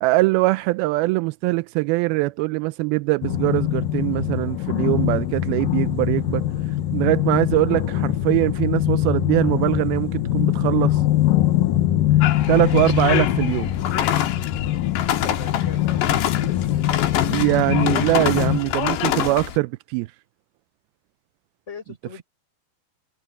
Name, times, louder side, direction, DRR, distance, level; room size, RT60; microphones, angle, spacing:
voice 1, 0.0-6.5 6.9-11.0 12.5-13.7 17.3-20.1, right 21 dB, 85° right, 2.2 m, -22 dB
sound 1, 3.2-18.6, left 13 dB, 65° left, 2.5 m, -23 dB
sound 2, 12.2-19.6, left 11 dB, 85° left, 3.8 m, -26 dB
voice 2, 15.2-16.8 21.7-22.2, left 4 dB, 15° left, 5.2 m, -40 dB
omnidirectional pair, 4.8 m